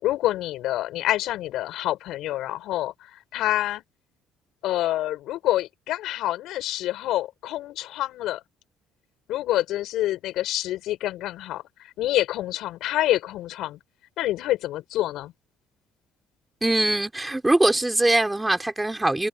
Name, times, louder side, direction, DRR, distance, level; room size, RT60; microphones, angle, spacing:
voice 1, 0.0-3.8 4.6-8.4 9.3-11.6 12.0-13.8 14.2-15.3, left 14 dB, 75° left, 7.0 m, -27 dB
voice 2, 16.6-19.3, right 2 dB, 10° right, 5.8 m, -22 dB
cardioid pair, 95°, 0 cm